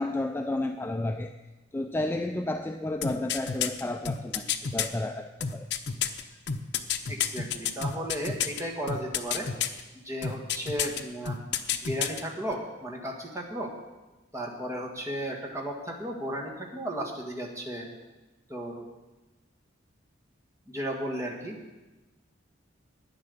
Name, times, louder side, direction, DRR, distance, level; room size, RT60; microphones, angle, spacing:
voice 1, 0.0-1.3 1.7-5.7, left 2 dB, 10° left, 6 dB, 0.3 m, -31 dB
sound 1, 3.0-4.9 5.4-8.6 8.9-9.8 10.2-11.0 11.3-12.2 12.5-12.6, left 8 dB, 60° left, 0.7 m, -29 dB
voice 2, 7.1-9.5 10.0-11.4 11.8-13.7 14.3-17.9 18.5-18.8 20.7-21.5, right 1 dB, 15° right, 0 dB, 1.8 m, -34 dB
9.9 x 9.8 x 7.0 m, 1.1 s
head